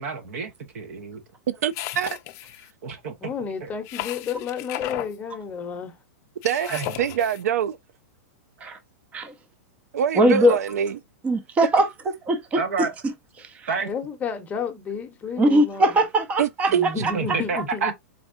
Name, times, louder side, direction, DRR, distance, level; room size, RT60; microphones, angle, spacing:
voice 1, 0.0-1.2 2.8-3.3 3.6-3.7 6.7-6.9 8.6-8.7 12.5-12.9 13.7-13.9 17.0-17.9, right 5 dB, 70° right, 1.4 m, -29 dB
voice 2, 1.5-2.2 6.4-7.8 9.9-11.0 16.4-16.9, right 9 dB, 85° right, 0.4 m, -24 dB
sound 1, 1.7-2.7 3.9-5.1 6.4-7.4, left 16 dB, 35° left, 0.5 m, -35 dB
voice 3, 3.2-5.9 13.9-16.0 16.7-17.9, left 6 dB, 20° left, 0.9 m, -31 dB
voice 4, 10.1-10.6 11.2-11.9 12.2-13.1 13.4-13.7 15.4-17.1, right 1 dB, 15° right, 0.6 m, -21 dB
4.5 x 3.5 x 2.6 m
supercardioid pair, 150°, 8 cm